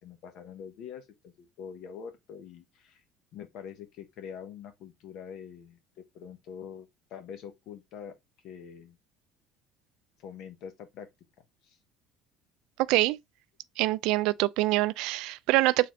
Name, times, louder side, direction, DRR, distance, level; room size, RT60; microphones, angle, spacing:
voice 1, 0.0-3.0 3.3-8.1 8.4-9.0 10.2-11.1 11.6-11.8, left 7 dB, 55° left, 1.1 m, -44 dB
voice 2, 13.8-15.9, right 18 dB, 70° right, 0.3 m, -25 dB
4.2 x 3.8 x 3.1 m
cardioid pair, 160°, 0 cm